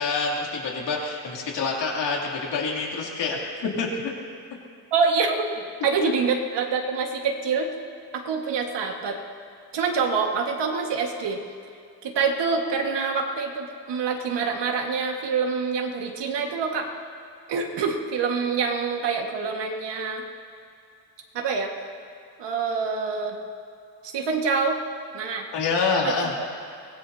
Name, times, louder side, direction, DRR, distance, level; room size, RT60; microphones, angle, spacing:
voice 1, 0.0-4.1 6.0-6.1 25.5-26.3, left 4 dB, 70° left, -2 dB, 3.0 m, -27 dB
voice 2, 4.9-5.5 5.8-7.7 8.1-9.2 9.7-11.4 12.0-16.9 17.5-20.2 21.3-21.7 22.4-23.4 24.0-24.8 25.1-25.5 26.0-26.5, right 5 dB, 70° right, 2 dB, 1.8 m, -26 dB
24.0 x 19.5 x 2.8 m, 2.5 s
cardioid pair, 170°, 44 cm